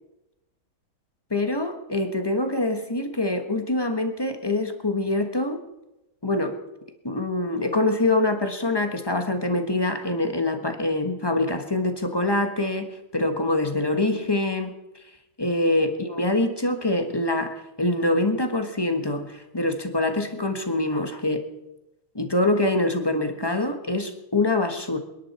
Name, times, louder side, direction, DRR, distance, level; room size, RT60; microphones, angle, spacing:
voice 1, 1.3-5.6 6.2-6.6 7.0-14.7 15.4-17.5 17.8-21.4 22.1-25.0, left 2 dB, 15° left, 6 dB, 1.0 m, -24 dB
27.5 x 11.0 x 4.3 m, 0.94 s
omnidirectional pair, 2.3 m